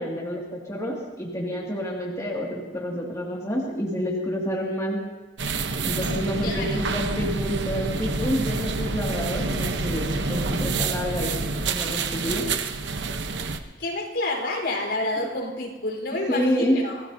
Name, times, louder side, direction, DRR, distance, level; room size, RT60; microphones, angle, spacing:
voice 1, 0.0-5.0 5.8-11.3 11.7-12.4 15.2-15.3 16.3-16.8, equal, 20° left, -3 dB, 2.2 m, -28 dB
sound 1, 5.4-13.6, right 3 dB, 75° right, 1.0 m, -28 dB
voice 2, 6.4-6.8 13.8-17.0, left 2 dB, 70° left, 0 dB, 4.3 m, -29 dB
26.0 x 18.0 x 2.7 m, 1.2 s
head